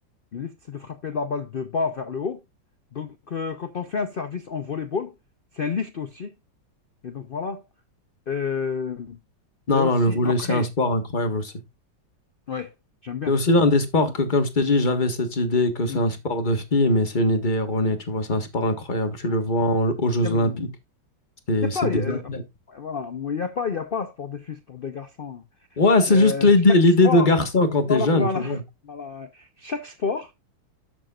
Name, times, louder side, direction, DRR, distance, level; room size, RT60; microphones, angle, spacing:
voice 1, 0.3-2.4 2.9-5.2 5.5-6.3 7.0-7.6 8.3-9.2 9.7-10.7 12.5-12.7 13.0-13.3 15.9-16.0 20.2-20.6 21.6-22.3 22.7-25.4 25.7-25.8 26.1-26.5 27.0-27.3 27.9-28.6 28.8-30.3, left 5 dB, 85° left, 0.4 m, -30 dB
voice 2, 9.7-11.5 13.3-20.7 21.5-22.4 25.8-28.6, left 2 dB, 30° left, 1.5 m, -21 dB
12.5 x 7.2 x 2.4 m
omnidirectional pair, 2.0 m